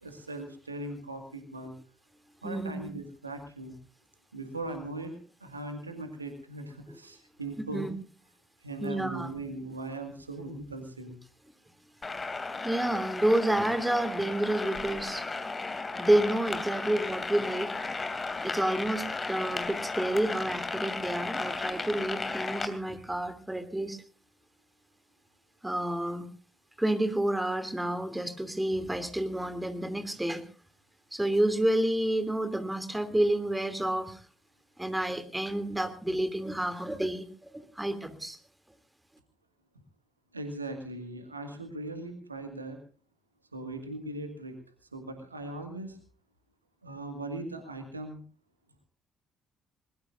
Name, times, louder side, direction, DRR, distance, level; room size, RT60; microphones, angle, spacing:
voice 1, 0.0-1.7 2.4-3.8 4.3-5.1 5.4-7.9 8.6-11.2 40.3-42.8 43.5-44.6 44.9-46.0 46.8-48.2, right 2 dB, 85° right, 6 dB, 1.9 m, -39 dB
voice 2, 2.4-2.9 6.9-7.0 7.7-7.9 8.8-9.3 12.6-15.5 16.0-17.7 18.4-24.0 25.6-26.3 26.8-30.4 31.1-34.2 34.8-38.4, right 1 dB, 10° right, 9 dB, 2.9 m, -29 dB
sound 1, 12.0-22.7, left 3 dB, 25° left, 2.9 m, -35 dB
21.5 x 20.5 x 2.6 m, 0.39 s
figure-of-eight pair, 45°, 0 cm